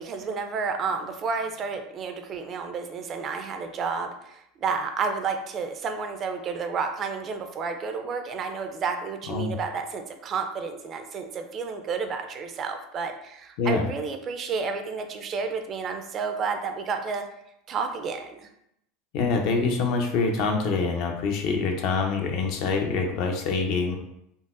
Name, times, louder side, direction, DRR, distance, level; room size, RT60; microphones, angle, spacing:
voice 1, 0.0-17.3 17.7-18.5, right 5 dB, 40° right, 6 dB, 0.4 m, -31 dB
voice 2, 19.1-24.0, left 4 dB, 60° left, 2 dB, 0.6 m, -25 dB
3.8 x 2.0 x 2.5 m, 0.78 s
supercardioid pair, 105°, 0 cm